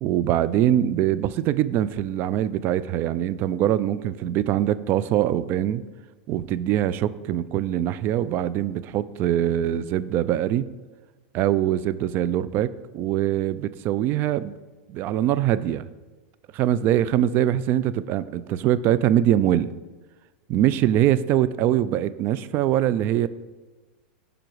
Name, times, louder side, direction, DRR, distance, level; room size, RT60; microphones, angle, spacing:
voice 1, 0.0-5.8 6.3-10.7 11.3-14.6 14.9-15.9 16.5-19.7 20.5-23.3, right 11 dB, 40° right, 16 dB, 0.4 m, -23 dB
11.0 x 5.1 x 4.7 m, 1.2 s
supercardioid pair, 135°, 6 cm